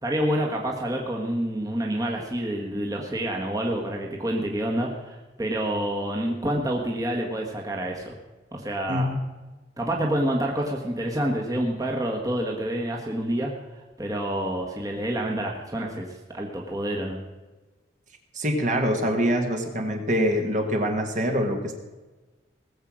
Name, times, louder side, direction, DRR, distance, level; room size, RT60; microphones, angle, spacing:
voice 1, 0.0-8.1 8.5-9.1 9.8-13.5 14.0-17.2, right 1 dB, 20° right, 0 dB, 1.4 m, -28 dB
voice 2, 8.9-9.2 18.3-21.8, equal, 40° right, 4 dB, 1.7 m, -24 dB
19.0 x 7.5 x 6.3 m, 1.2 s
head